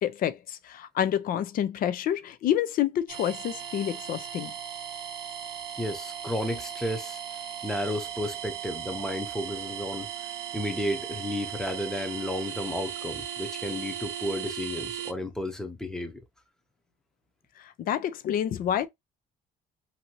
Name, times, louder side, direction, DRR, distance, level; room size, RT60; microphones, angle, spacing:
voice 1, 0.0-4.5 17.6-18.9, left 10 dB, 55° left, 0.5 m, -28 dB
sound 1, 3.1-15.1, right 9 dB, 75° right, 0.6 m, -37 dB
voice 2, 5.8-7.2 7.6-10.1 10.5-16.2, left 1 dB, 5° left, 0.8 m, -32 dB
2.7 x 2.6 x 2.8 m
cardioid pair, 110°, 17 cm